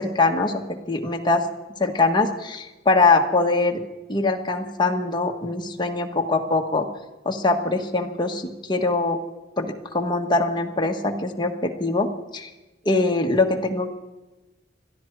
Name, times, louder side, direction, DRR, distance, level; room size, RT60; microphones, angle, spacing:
voice 1, 0.0-1.5 1.8-3.8 4.1-6.9 7.2-9.2 9.6-12.5 12.8-13.9, left 3 dB, 25° left, 2 dB, 1.4 m, -22 dB
22.0 x 13.0 x 4.7 m, 1.1 s
head